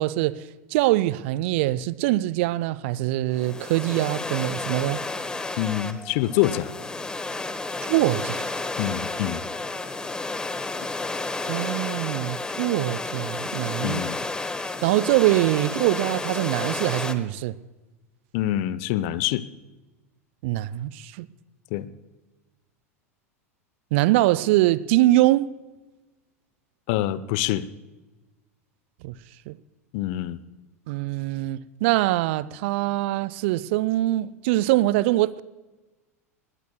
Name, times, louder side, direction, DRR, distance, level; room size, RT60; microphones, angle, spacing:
voice 1, 0.0-5.0 7.8-8.5 11.5-14.0 14.6-17.6 20.4-21.3 23.9-25.5 29.0-29.2 29.5-29.6 30.9-35.4, right 16 dB, 55° right, 0.5 m, -23 dB
sound 1, 3.3-17.1, left 3 dB, 10° left, 1.0 m, -31 dB
voice 2, 5.6-6.7 8.8-9.4 13.8-14.2 18.3-19.4 21.7-21.9 26.9-27.7 29.9-30.4, left 13 dB, 50° left, 0.7 m, -25 dB
20.5 x 19.0 x 2.2 m
figure-of-eight pair, 85°, 8 cm